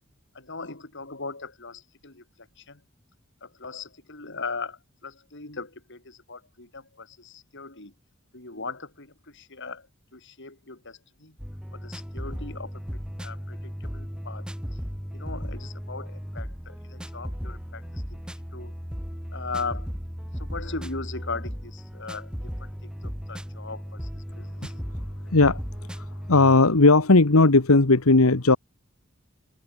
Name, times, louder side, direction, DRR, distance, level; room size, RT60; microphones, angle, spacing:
voice 1, 0.3-2.8 3.4-7.9 8.3-9.9 10.1-11.4 11.7-14.5 15.1-18.2 18.5-18.7 19.3-19.9 20.4-24.7, left 4 dB, 60° left, 5.4 m, -39 dB
sound 1, 11.4-26.6, equal, 5° right, 3.8 m, -36 dB
voice 2, 25.9-28.6, left 3 dB, 85° left, 1.5 m, -17 dB
open air
head